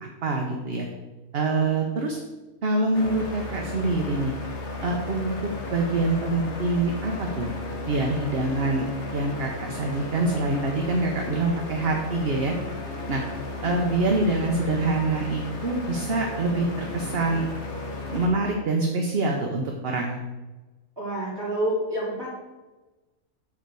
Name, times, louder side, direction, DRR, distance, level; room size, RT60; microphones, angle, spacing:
voice 1, 0.0-0.9 1.3-2.2 2.6-4.3 4.8-5.3 5.7-7.5 7.9-8.9 9.1-12.5 13.1-13.2 13.6-17.5 18.1-20.2, right 2 dB, 50° right, 1 dB, 1.0 m, -25 dB
sound 1, 2.9-18.3, left 3 dB, 60° left, 1.6 m, -34 dB
voice 2, 21.0-22.3, right 1 dB, 15° right, -6 dB, 3.1 m, -28 dB
7.3 x 4.5 x 6.8 m, 1.2 s
omnidirectional pair, 1.4 m